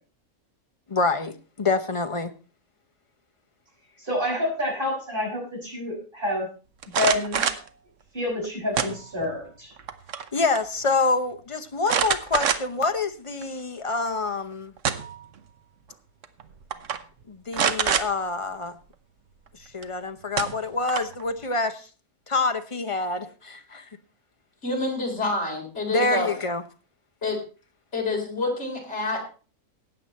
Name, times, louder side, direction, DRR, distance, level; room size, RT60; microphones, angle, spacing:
voice 1, 0.9-2.3 10.3-14.7 17.3-18.8 19.7-21.9 22.3-23.9 25.9-26.6, left 3 dB, 30° left, 8 dB, 0.6 m, -26 dB
voice 2, 4.0-6.5 6.9-7.4 8.1-9.7, left 1 dB, 35° right, -2 dB, 6.2 m, -28 dB
sound 1, 6.8-7.7 8.7-9.4 9.8-10.3 10.5-10.6 11.9-12.9 13.4-13.5 14.5-15.2 16.2-16.4 16.7-17.0 17.5-18.1 19.8-19.9 20.4-21.2, right 7 dB, 60° right, 1.2 m, -25 dB
voice 3, 24.6-26.3 27.2-27.4 27.9-29.2, left 2 dB, 50° left, 0 dB, 4.2 m, -27 dB
15.0 x 9.1 x 4.3 m, 0.36 s
omnidirectional pair, 1.5 m